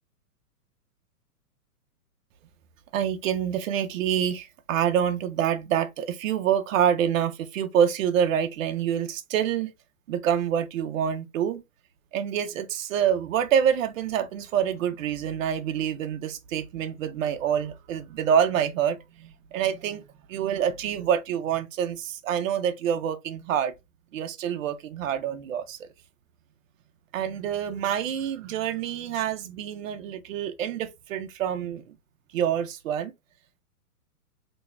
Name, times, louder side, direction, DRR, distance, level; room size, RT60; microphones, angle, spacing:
voice 1, 2.9-9.7 10.1-11.6 12.1-20.0 20.3-23.7 24.1-25.9 27.1-31.8 32.3-33.1, right 9 dB, 60° right, 0.9 m, -26 dB
3.1 x 3.0 x 3.4 m
hypercardioid pair, 135°, 45 cm